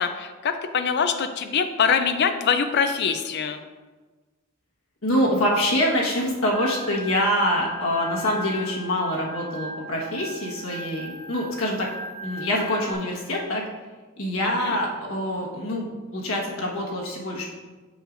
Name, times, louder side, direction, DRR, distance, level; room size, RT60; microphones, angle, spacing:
voice 1, 0.0-3.6 14.6-14.8, left 6 dB, 50° left, 7 dB, 0.4 m, -23 dB
voice 2, 5.0-11.9 12.2-13.6 14.2-17.5, equal, 70° left, -2 dB, 1.4 m, -25 dB
Organ, 6.5-12.9, equal, 10° left, 1.7 m, -38 dB
7.7 x 6.4 x 2.6 m, 1.3 s
head